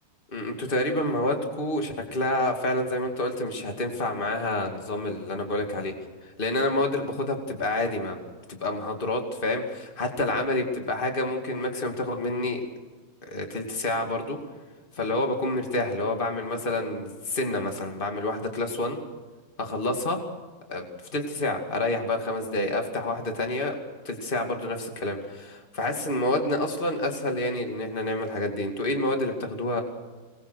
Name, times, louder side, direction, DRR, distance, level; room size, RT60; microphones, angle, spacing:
voice 1, 0.3-5.9 6.2-8.2 8.5-12.6 13.3-14.4 14.9-19.0 19.6-20.2 20.7-20.9 21.1-23.7 24.0-29.8, left 2 dB, 30° left, 4 dB, 0.9 m, -28 dB
23.5 x 20.0 x 6.4 m, 1.3 s
omnidirectional pair, 5.2 m